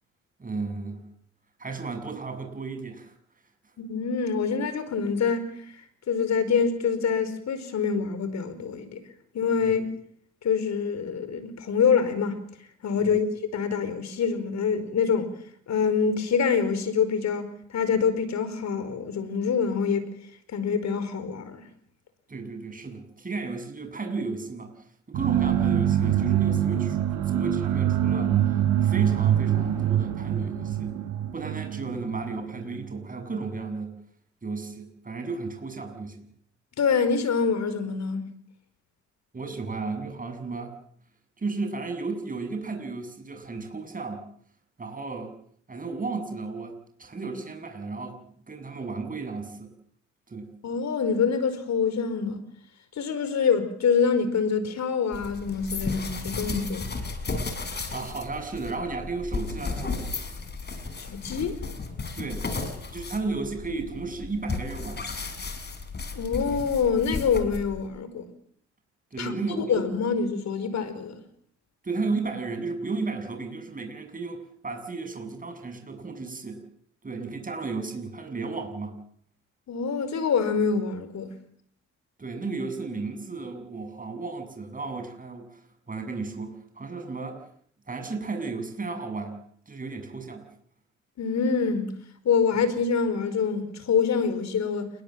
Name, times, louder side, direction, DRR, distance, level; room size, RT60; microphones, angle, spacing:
voice 1, 0.4-1.0 1.6-3.1 9.6-9.8 13.0-13.2 22.3-27.0 27.3-30.9 31.3-33.9 34.4-36.2 39.3-40.8 41.4-44.2 44.8-45.4 45.7-49.7 50.3-50.5 57.9-60.1 62.1-62.5 62.9-65.0 69.1-69.9 71.8-76.6 77.0-79.0 82.2-85.6 85.9-87.4 87.9-89.4 89.7-90.5, right 3 dB, 25° right, 7.4 m, -34 dB
voice 2, 3.8-5.8 6.1-9.0 9.3-9.8 10.4-12.4 12.8-15.3 15.7-20.1 20.5-21.6 36.8-38.2 50.6-52.4 53.0-56.9 61.0-61.6 66.1-68.2 69.2-69.3 69.7-71.2 79.7-81.3 91.2-92.0 92.2-94.9, left 6 dB, 65° left, 5.0 m, -25 dB
sound 1, 25.1-32.9, right 10 dB, 90° right, 4.9 m, -25 dB
sound 2, 55.1-67.9, left 4 dB, 35° left, 5.5 m, -34 dB
29.0 x 21.5 x 7.8 m
cardioid pair, 90°, 30 cm